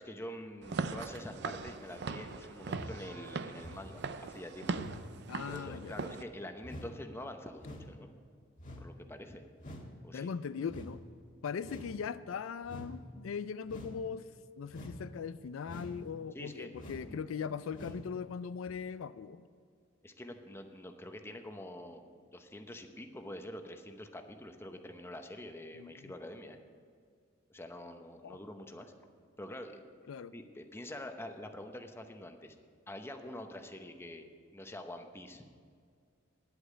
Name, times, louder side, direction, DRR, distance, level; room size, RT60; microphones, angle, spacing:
voice 1, 0.0-4.8 5.5-8.1 8.8-9.4 10.0-10.3 16.3-17.2 17.8-18.0 20.0-26.6 27.5-28.9 29.4-29.8 30.3-32.6 32.9-34.2 34.5-35.4, left 1 dB, 10° left, 5 dB, 0.8 m, -46 dB
Walk footsteps / Siren, 0.6-6.2, right 4 dB, 60° right, 0.5 m, -40 dB
sound 1, 2.6-3.0 3.6-3.9 4.7-5.0 5.6-5.9 6.6-6.9 7.6-7.9 8.6-8.9 9.6-9.9 10.7-10.9 11.6-12.0 12.6-12.9 13.7-14.0 14.7-15.0 15.6-16.0 16.7-17.1 17.7-18.0 18.7-18.8, left 1 dB, 40° left, 1.6 m, -46 dB
voice 2, 5.3-6.0 10.1-11.0 11.4-14.3 14.6-19.5 25.7-26.1 28.2-28.4 30.1-30.3, left 6 dB, 80° left, 14 dB, 0.4 m, -40 dB
10.0 x 8.2 x 8.6 m, 2.1 s
head